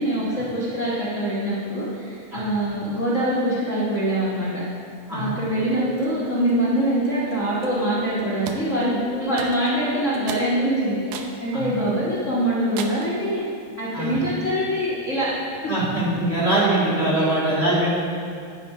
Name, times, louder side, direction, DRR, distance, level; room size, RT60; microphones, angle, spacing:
voice 1, 0.0-4.6 5.1-13.4 13.8-15.3 17.1-17.3, right 1 dB, 60° left, -8 dB, 0.7 m, -24 dB
sound 1, 5.5-12.4 16.7-16.8 17.2-17.3, equal, 60° right, 1.2 m, -39 dB
sound 2, 8.5-8.7 9.4-9.8 10.3-10.5 11.1-11.4 11.9-12.0 12.8-13.2, right 6 dB, 80° right, 2.1 m, -34 dB
voice 2, 15.7-17.9, right 1 dB, 25° right, -8 dB, 2.2 m, -22 dB
9.3 x 7.5 x 5.3 m, 2.4 s
omnidirectional pair, 3.5 m